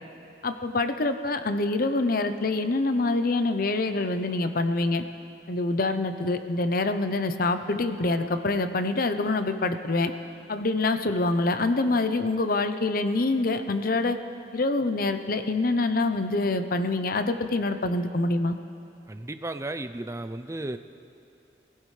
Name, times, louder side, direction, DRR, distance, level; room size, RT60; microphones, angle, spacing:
voice 1, 0.4-5.0 5.5-10.1 10.5-14.2 14.5-18.6, left 2 dB, 55° left, 9 dB, 0.8 m, -25 dB
voice 2, 19.1-20.8, right 2 dB, 15° right, 10 dB, 0.5 m, -34 dB
26.5 x 15.5 x 3.3 m, 2.6 s
head